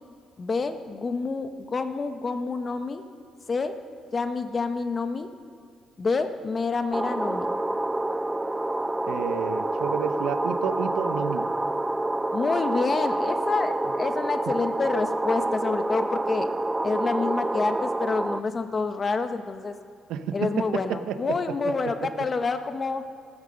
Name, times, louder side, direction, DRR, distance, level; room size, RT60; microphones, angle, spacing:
voice 1, 0.4-3.0 3.5-3.7 4.1-5.3 6.0-7.5 12.3-16.5 16.8-19.7 20.3-23.0, left 4 dB, 35° left, 8 dB, 1.0 m, -28 dB
sound 1, 6.9-18.4, right 2 dB, 15° right, 0.5 m, -27 dB
voice 2, 9.1-11.5 14.5-14.6 20.1-22.1, right 8 dB, 90° right, 11 dB, 0.8 m, -31 dB
14.0 x 13.0 x 6.4 m, 2.2 s
cardioid pair, 90°, 0 cm